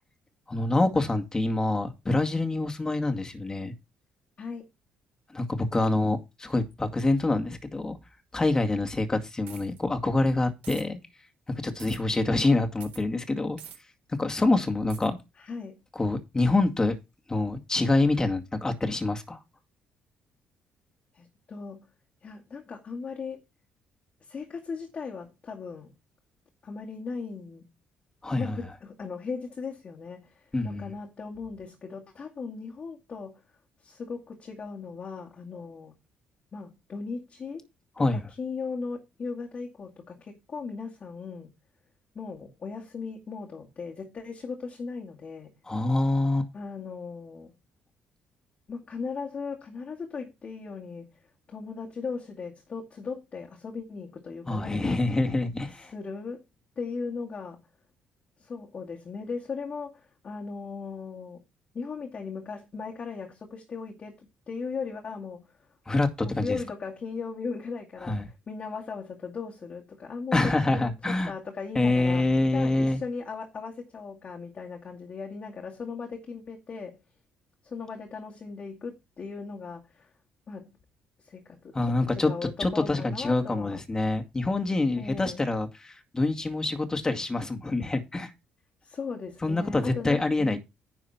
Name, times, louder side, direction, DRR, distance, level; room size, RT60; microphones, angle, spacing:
voice 1, 0.5-3.7 5.3-8.0 8.3-11.0 11.6-13.6 14.2-15.2 16.0-17.0 17.3-19.4 28.2-28.6 30.5-30.9 38.0-38.2 45.7-46.5 54.5-55.9 65.9-66.6 68.0-68.3 70.3-71.3 71.8-73.0 81.7-82.3 82.6-88.3 89.4-90.6, left 2 dB, 20° left, 2.1 m, -26 dB
sound 1, 9.5-9.8 10.6-10.8 11.8-12.0 12.8-13.0 13.6-13.8 14.9-15.1, right 8 dB, 80° right, 3.7 m, -45 dB
voice 2, 15.4-15.8 21.1-21.9 22.2-23.4 24.2-25.9 26.6-27.7 28.4-33.4 33.8-36.0 36.5-37.7 38.0-41.5 42.1-45.6 46.5-47.6 48.7-51.1 51.5-55.0 55.8-56.4 56.8-57.6 58.4-61.4 61.7-65.5 66.2-70.4 70.7-72.2 72.5-77.0 77.6-80.1 80.5-80.8 81.2-83.8 85.0-85.4 88.8-90.6, left 5 dB, 45° left, 2.3 m, -38 dB
10.5 x 4.8 x 5.7 m
supercardioid pair, 65°, 3 cm